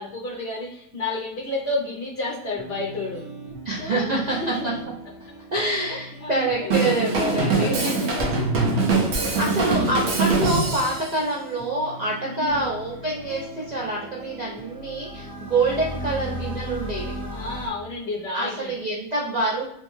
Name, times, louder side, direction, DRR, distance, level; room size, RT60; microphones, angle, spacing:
voice 1, 0.0-3.3 3.8-4.8 5.3-6.7 7.5-10.0 12.3-12.7 17.3-18.7, left 2 dB, 60° left, -4 dB, 0.8 m, -32 dB
sound 1, 2.6-17.6, right 1 dB, 25° right, 0.5 m, -42 dB
voice 2, 3.7-4.4 4.6-4.7 5.5-8.1 9.4-17.1 18.3-19.6, right 2 dB, 80° right, -4 dB, 0.3 m, -26 dB
Drum kit / Drum, 6.7-11.1, right 3 dB, 60° right, 0.8 m, -22 dB
sound 2, 12.5-17.7, equal, 30° left, 0.3 m, -35 dB
3.3 x 2.1 x 3.1 m, 0.74 s
omnidirectional pair, 1.5 m